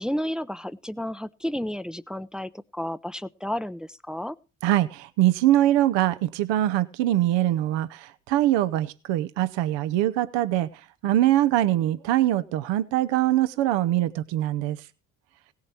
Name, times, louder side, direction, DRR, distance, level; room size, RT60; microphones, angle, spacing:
voice 1, 0.0-4.4, equal, ahead, 14 dB, 0.5 m, -32 dB
voice 2, 4.6-10.7 11.0-14.8, right 13 dB, 70° right, 14 dB, 0.8 m, -23 dB
17.0 x 7.5 x 4.4 m, 0.32 s
hypercardioid pair, 55°, 44 cm